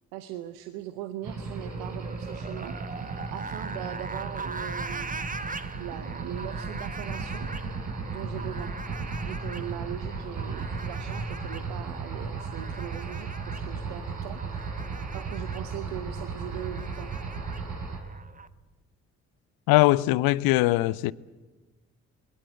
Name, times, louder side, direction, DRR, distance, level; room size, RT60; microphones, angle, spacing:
voice 1, 0.1-5.2 5.8-7.5 8.1-8.7 9.2-14.8 15.1-17.2, right 12 dB, 75° right, 1.1 m, -40 dB
sound 1, 1.2-18.0, right 4 dB, 55° right, 5.6 m, -35 dB
sound 2, 1.5-18.5, right 4 dB, 20° right, 1.3 m, -41 dB
voice 2, 19.7-21.1, left 19 dB, 70° left, 0.7 m, -21 dB
28.5 x 20.0 x 8.1 m
hypercardioid pair, 45°, 38 cm